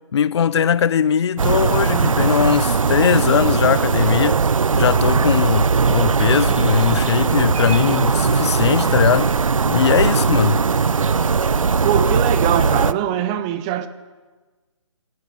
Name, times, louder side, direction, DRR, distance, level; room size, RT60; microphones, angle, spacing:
voice 1, 0.1-4.4 4.7-9.4 9.7-10.6, left 8 dB, 55° left, 0.4 m, -19 dB
sound 1, 1.4-12.9, right 5 dB, 90° right, 0.4 m, -19 dB
voice 2, 11.8-13.9, right 10 dB, 15° right, 0.4 m, -22 dB
16.5 x 7.8 x 6.8 m
figure-of-eight pair, 145°, 17 cm